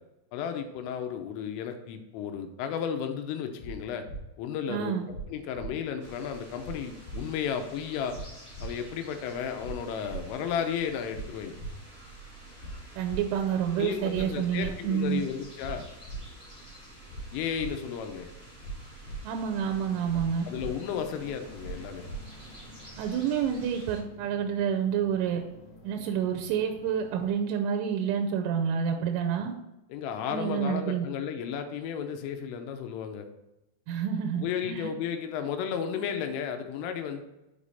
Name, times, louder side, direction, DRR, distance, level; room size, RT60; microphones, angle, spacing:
voice 1, 0.3-4.1 4.4-5.0 5.3-8.2 8.6-11.5 13.8-15.9 17.3-18.3 20.5-22.1 29.9-33.3 34.3-37.2, left 7 dB, 90° left, 6 dB, 3.3 m, -33 dB
sound 1, 3.6-3.7 4.0-4.2 5.1-5.2 5.5-5.7 6.6-6.7 7.0-7.2 8.1-8.2 8.5-8.7 9.6-9.7 10.0-10.2 11.1-11.2 11.5-11.7 12.6-12.7 13.0-13.2 14.1-14.2 14.5-14.7 15.6-15.7 16.0-16.2 17.1-17.2 17.5-17.7 18.6-18.7 19.0-19.2 20.1-20.2 20.5-20.7 21.6-21.7 22.0-22.2, right 3 dB, 65° left, 2.2 m, -39 dB
voice 2, 4.7-5.1 13.0-15.2 19.2-20.5 23.0-25.4 25.8-29.5 30.3-31.1 33.9-34.9, right 8 dB, 85° right, 3 dB, 3.1 m, -28 dB
sound 2, 6.0-24.0, right 2 dB, 5° left, 0.6 m, -49 dB
sound 3, 19.3-27.3, left 1 dB, 40° left, 2.3 m, -51 dB
7.7 x 5.2 x 4.1 m, 0.95 s
omnidirectional pair, 5.8 m